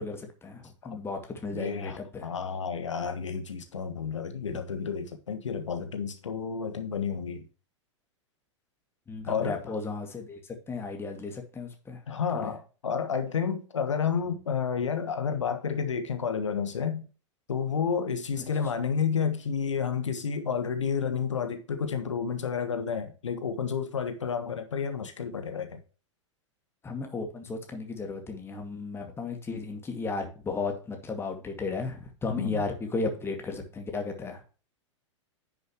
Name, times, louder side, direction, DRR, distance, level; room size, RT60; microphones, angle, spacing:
voice 1, 0.0-2.3 4.5-4.6 9.1-12.0 12.3-12.5 18.4-18.5 26.8-34.4, left 3 dB, 15° left, 2.1 m, -35 dB
voice 2, 1.5-7.5 9.3-9.6 12.1-17.1 17.5-25.8 32.3-32.6, left 6 dB, 75° left, 1.3 m, -30 dB
10.0 x 6.8 x 3.0 m
figure-of-eight pair, 100°, 16 cm